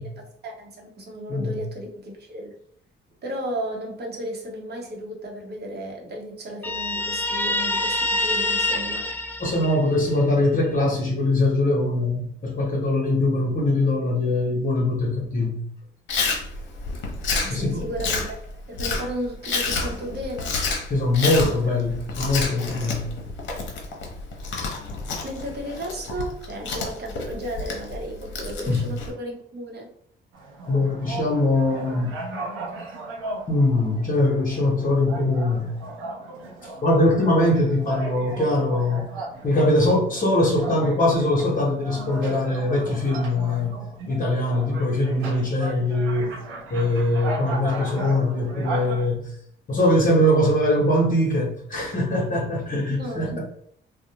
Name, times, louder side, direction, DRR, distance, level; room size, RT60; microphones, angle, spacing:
voice 1, 0.0-2.5 3.2-9.1 17.4-18.4 18.7-20.6 21.2-21.7 25.2-29.9 52.9-53.4, right 1 dB, 55° right, 0 dB, 0.8 m, -34 dB
Guitar, 6.6-10.2, left 2 dB, 10° left, 0.3 m, -26 dB
voice 2, 9.4-15.6 17.5-17.8 20.9-23.1 28.7-28.9 30.7-32.1 33.5-35.7 36.8-39.1 39.4-43.8 44.1-46.4 46.7-49.3 49.7-53.4, left 1 dB, 45° left, -3 dB, 0.8 m, -22 dB
Chewing mastication, 16.1-29.1, left 4 dB, 70° left, 0.7 m, -30 dB
sound 1, 30.3-49.1, right 2 dB, 90° right, 0.6 m, -36 dB
2.4 x 2.0 x 2.8 m, 0.65 s
cardioid pair, 90°, 20 cm